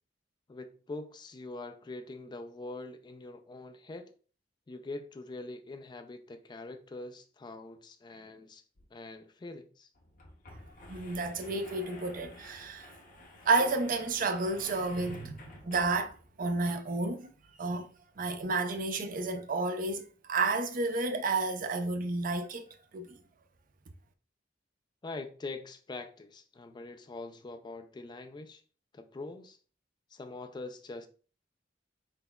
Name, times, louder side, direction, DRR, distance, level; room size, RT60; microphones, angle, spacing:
voice 1, 0.5-4.1 4.7-8.6 8.9-9.9 25.0-28.6 28.9-29.6 30.1-31.1, left 2 dB, 25° left, 0.3 m, -43 dB
sound 1, 8.7-8.8 9.1-9.2 9.9-16.4, left 2 dB, 50° left, 0.7 m, -51 dB
voice 2, 10.9-12.9 13.5-17.3 17.6-17.9 18.2-23.2, right 3 dB, 50° right, 0.5 m, -31 dB
4.1 x 3.9 x 2.2 m
head